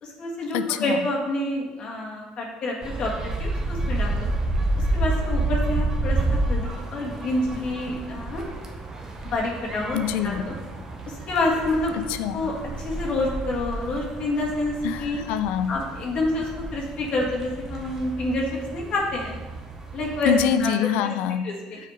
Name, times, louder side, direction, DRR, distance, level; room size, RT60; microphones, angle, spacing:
voice 1, 0.0-4.3 4.7-8.5 9.3-10.5 11.1-12.0 12.3-15.2 15.7-19.4 19.9-20.3 20.6-21.1 21.4-21.8, left 2 dB, 50° left, -2 dB, 1.6 m, -28 dB
voice 2, 0.5-1.0 9.9-10.4 11.9-12.5 14.8-15.8 20.2-21.5, left 9 dB, 80° left, 11 dB, 0.4 m, -25 dB
sound 1, 2.8-20.5, right 2 dB, 25° right, 1.0 m, -30 dB
6.1 x 4.9 x 4.8 m, 1.2 s
supercardioid pair, 105°, 2 cm